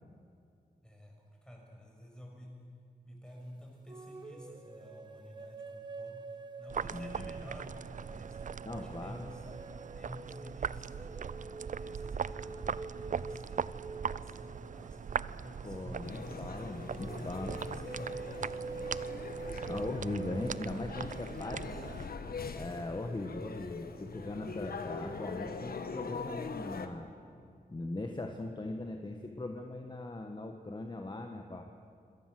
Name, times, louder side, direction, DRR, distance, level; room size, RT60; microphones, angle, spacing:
voice 1, 0.8-1.1 1.4-2.5 3.0-6.2 6.6-8.4 8.7-9.4 9.9-13.6 14.1-16.4 16.9-18.8, equal, 5° left, -1 dB, 6.5 m, -51 dB
sound 1, 3.9-15.2 16.6-20.5, right 4 dB, 25° right, 1.4 m, -46 dB
sound 2, 6.7-22.1, right 7 dB, 50° right, 0.5 m, -40 dB
voice 2, 6.9-7.3 8.6-9.3 15.6-17.5 19.7-22.0 22.5-27.1 27.7-31.7, left 2 dB, 30° left, 4 dB, 1.5 m, -40 dB
sound 3, 16.0-26.9, left 4 dB, 70° left, 1.5 m, -42 dB
26.0 x 17.5 x 7.8 m, 2.3 s
wide cardioid pair, 85°, 16 cm